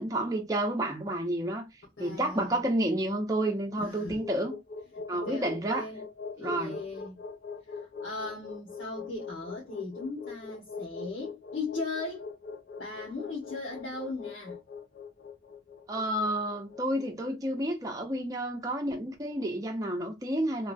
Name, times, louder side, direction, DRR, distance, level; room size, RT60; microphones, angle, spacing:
voice 1, 0.0-1.6 2.0-4.6 5.1-5.9 6.4-6.8 15.9-20.7, right 1 dB, 20° right, 0.6 m, -30 dB
voice 2, 2.0-2.6 3.8-4.2 4.9-6.0 6.3-7.2 7.7-12.2 12.8-14.6, left 3 dB, 75° left, 1.2 m, -38 dB
sound 1, 3.3-17.6, left 5 dB, 55° left, 0.4 m, -42 dB
3.1 x 2.4 x 2.5 m
head